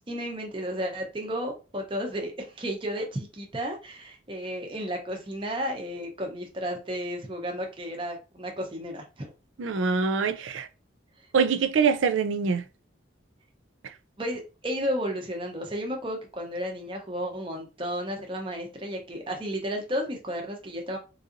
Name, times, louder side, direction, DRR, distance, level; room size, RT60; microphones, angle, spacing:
voice 1, 0.1-9.3 11.2-11.3 14.2-21.0, equal, 25° right, 0.7 m, -33 dB
voice 2, 9.6-10.7 11.3-12.6, right 5 dB, 85° right, 0.4 m, -24 dB
3.9 x 2.7 x 2.5 m
head